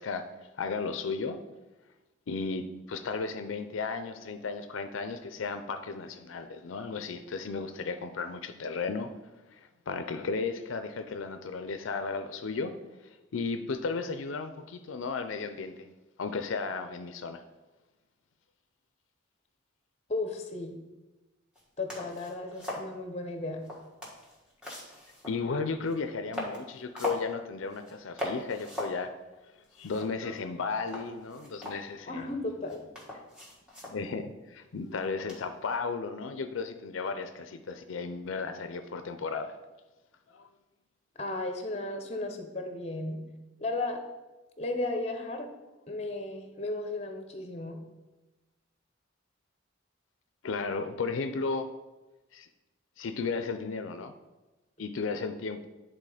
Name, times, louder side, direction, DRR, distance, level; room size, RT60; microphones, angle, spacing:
voice 1, 0.0-1.4 2.3-9.1 9.5-12.7 13.3-15.9 16.2-17.4 25.3-29.1 29.8-32.3 33.8-39.5 40.3-40.5 50.4-51.7 52.3-52.5 53.0-54.1 54.8-55.7, left 4 dB, 85° left, 9 dB, 0.5 m, -34 dB
voice 2, 20.1-20.8 21.8-23.7 32.1-32.8 41.2-43.2 43.6-44.0 44.6-45.5 45.9-47.8, left 2 dB, 35° left, 5 dB, 0.9 m, -34 dB
sound 1, 21.6-21.7 21.9-22.9 23.6-25.4 25.8-25.9 26.3-27.3 27.7-27.9 28.2-29.0 29.3-29.4 29.6-30.5 30.9-32.2 32.7-34.0 35.3-35.6, left 1 dB, 5° right, 1.5 m, -39 dB
9.9 x 3.8 x 4.9 m, 1.1 s
head